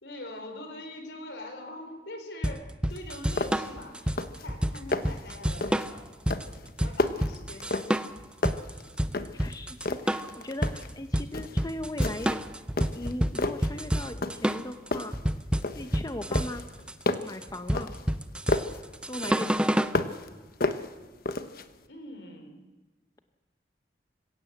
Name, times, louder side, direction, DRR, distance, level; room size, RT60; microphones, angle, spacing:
voice 1, 0.0-4.0 4.4-6.1 6.8-8.1 21.9-22.6, left 1 dB, 75° left, 6 dB, 4.0 m, -43 dB
sound 1, 2.4-20.0, equal, 5° right, 0.7 m, -29 dB
sound 2, 2.9-3.0 3.4-3.8 4.0-4.5 4.7-5.2 5.6-5.9 6.3-8.1 8.4-9.5 9.8-10.9 11.3-11.6 12.0-12.4 12.8-13.7 14.2-14.6 14.9-16.0 16.3-18.8 19.2-20.3 20.6-21.7, left 2 dB, 55° left, 1.1 m, -32 dB
voice 2, 9.2-12.4 12.9-15.2 15.7-16.6 17.2-17.9 19.1-19.8, left 1 dB, 20° left, 8 dB, 0.9 m, -38 dB
26.0 x 17.0 x 8.0 m, 1.2 s
head